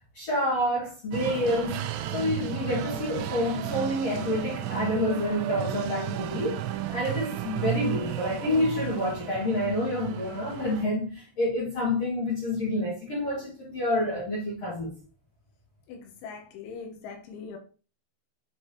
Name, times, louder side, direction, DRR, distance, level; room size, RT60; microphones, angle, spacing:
voice 1, 0.1-1.8 2.1-6.6 6.9-14.9, left 1 dB, 50° left, 2.0 m, -28 dB
sound 1, 1.1-10.9, right 12 dB, 90° right, 2.5 m, -33 dB
voice 2, 15.9-17.6, left 5 dB, 80° left, 3.2 m, -41 dB
8.1 x 4.5 x 2.8 m
omnidirectional pair, 5.9 m